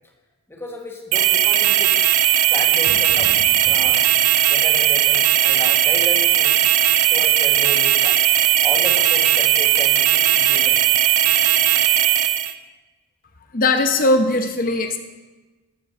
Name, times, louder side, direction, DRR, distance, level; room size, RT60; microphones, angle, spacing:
voice 1, 0.5-2.0 2.5-4.1 4.5-6.6 7.1-8.2 8.6-10.8, left 1 dB, 10° left, 0 dB, 1.3 m, -33 dB
sound 1, 1.1-12.5, right 11 dB, 70° right, 0.5 m, -17 dB
Fire / Fireworks, 2.8-8.4, equal, 85° left, 2.4 m, -43 dB
voice 2, 13.5-15.0, left 2 dB, 40° left, 6 dB, 0.8 m, -19 dB
12.5 x 4.6 x 6.3 m, 1.2 s
head